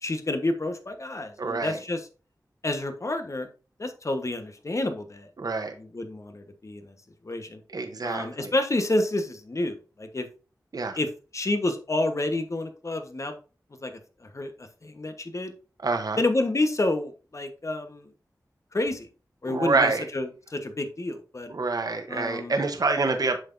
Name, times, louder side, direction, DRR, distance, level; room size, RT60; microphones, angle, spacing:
voice 1, 0.0-2.0 2.6-3.5 3.8-6.9 7.2-7.6 8.0-10.3 11.0-11.1 11.3-13.3 13.8-14.5 14.8-15.5 16.2-18.1 18.7-19.1 19.4-21.5 22.1-22.6, left 2 dB, 50° left, 7 dB, 1.2 m, -29 dB
voice 2, 1.4-1.8 5.4-5.7 7.7-8.5 10.7-11.0 15.8-16.2 19.5-20.0 21.5-23.4, right 3 dB, 65° right, 6 dB, 1.0 m, -26 dB
7.8 x 5.9 x 2.6 m, 0.35 s
wide cardioid pair, 55°, 7 cm